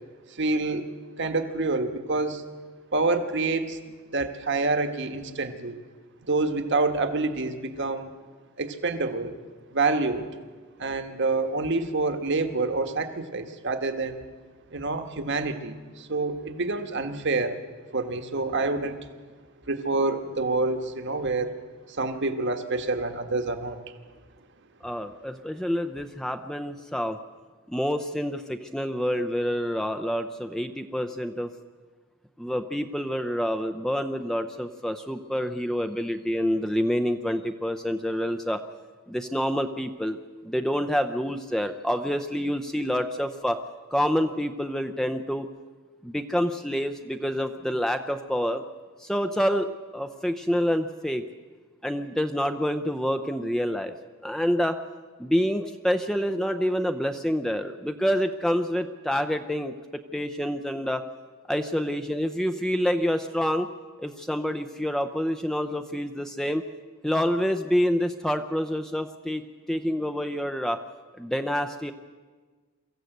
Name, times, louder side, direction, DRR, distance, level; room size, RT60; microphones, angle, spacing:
voice 1, 0.4-0.9 1.2-2.4 2.9-3.8 4.1-5.8 6.2-8.1 8.6-9.3 9.7-10.3 10.8-14.2 14.7-17.6 17.9-19.0 19.7-21.5 21.9-23.8, right 3 dB, 60° right, 7 dB, 1.5 m, -27 dB
voice 2, 24.8-27.2 27.7-31.5 32.4-38.6 39.1-40.2 40.4-43.6 43.9-45.5 46.0-48.6 49.0-51.2 51.8-53.9 54.2-54.8 55.2-59.7 60.1-61.0 61.5-63.7 64.0-66.6 67.0-69.4 69.7-70.8 71.2-71.9, equal, ahead, 7 dB, 0.6 m, -27 dB
23.5 x 14.5 x 7.9 m, 1.5 s
head